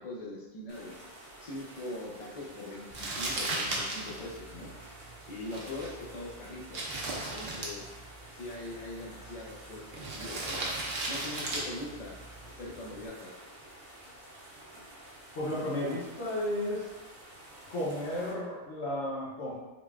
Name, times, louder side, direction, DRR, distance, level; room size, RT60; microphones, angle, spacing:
voice 1, 0.0-4.7 5.3-6.8 7.1-7.9 8.3-10.8 11.1-12.2 12.4-13.3, left 2 dB, 40° left, -2 dB, 0.6 m, -42 dB
sound 1, 0.7-18.3, right 1 dB, 35° right, 0.8 m, -51 dB
Crumpling crinkling, 2.9-13.1, right 2 dB, 65° right, 0.9 m, -38 dB
voice 2, 15.3-16.9 17.7-19.5, left 1 dB, 80° left, -6 dB, 1.0 m, -33 dB
3.9 x 3.2 x 2.3 m, 1.2 s
omnidirectional pair, 1.1 m